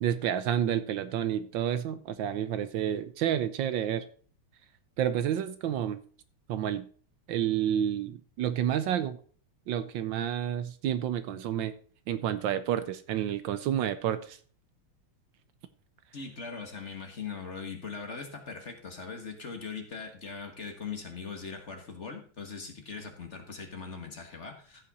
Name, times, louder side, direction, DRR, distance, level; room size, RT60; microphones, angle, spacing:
voice 1, 0.0-4.0 5.0-6.0 6.5-6.8 7.3-9.2 9.7-11.7 12.1-14.4, right 10 dB, 75° right, 12 dB, 1.4 m, -29 dB
voice 2, 16.1-24.8, left 5 dB, 35° left, 4 dB, 1.7 m, -40 dB
15.0 x 5.5 x 4.1 m, 0.43 s
omnidirectional pair, 2.2 m